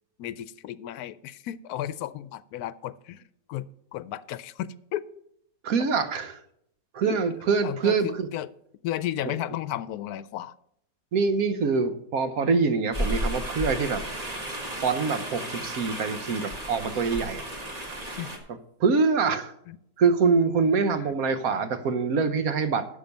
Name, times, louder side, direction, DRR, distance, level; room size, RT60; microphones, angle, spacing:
voice 1, 0.2-5.1 7.0-7.2 7.6-8.5 8.8-10.6 18.2-18.3 19.7-19.8 20.9-21.2, left 12 dB, 80° left, 17 dB, 1.1 m, -34 dB
voice 2, 5.6-6.4 6.9-8.3 11.1-14.0 14.7-17.4 17.9-18.2 18.8-19.5 20.0-22.9, right 4 dB, 70° right, 10 dB, 1.3 m, -25 dB
sound 1, 12.9-18.4, equal, 25° right, 1.7 m, -33 dB
11.5 x 7.1 x 5.3 m, 0.74 s
omnidirectional pair, 1.6 m